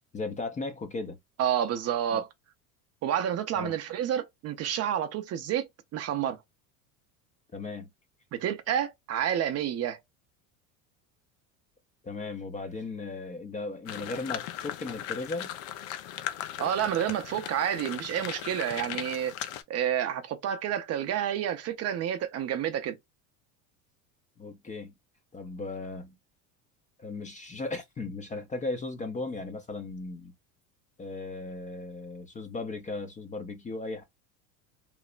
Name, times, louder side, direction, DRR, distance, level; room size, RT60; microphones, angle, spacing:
voice 1, 0.1-1.2 2.1-2.2 3.6-3.8 7.5-7.9 12.0-15.6 24.4-24.9 25.3-26.2 27.0-30.3 31.0-34.0, left 3 dB, 20° left, 0.5 m, -36 dB
voice 2, 1.4-2.3 3.0-6.4 8.3-10.0 16.6-19.3 19.7-23.0, right 10 dB, 35° right, 0.5 m, -29 dB
sound 1, 13.9-19.6, left 11 dB, 70° left, 0.7 m, -38 dB
3.1 x 2.0 x 2.4 m
supercardioid pair, 100°, 43 cm